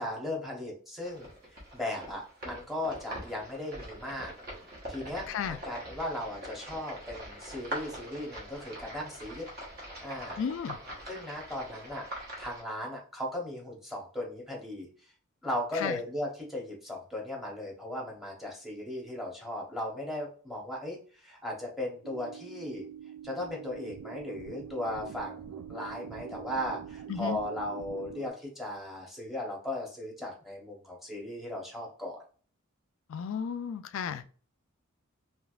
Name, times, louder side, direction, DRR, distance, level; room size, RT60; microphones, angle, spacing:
voice 1, 0.0-4.3 4.9-9.5 10.0-10.4 11.1-12.1 12.4-14.9 15.4-22.9 23.2-32.2, left 1 dB, ahead, -2 dB, 1.0 m, -37 dB
sound 1, 1.0-12.6, right 1 dB, 45° right, 1.0 m, -43 dB
voice 2, 5.3-5.6 10.4-10.8 15.7-16.0 27.1-27.4 33.1-34.4, left 7 dB, 60° left, 12 dB, 0.3 m, -34 dB
sound 2, 22.0-28.3, right 9 dB, 75° right, 0.3 m, -45 dB
3.3 x 3.0 x 2.4 m, 0.41 s
head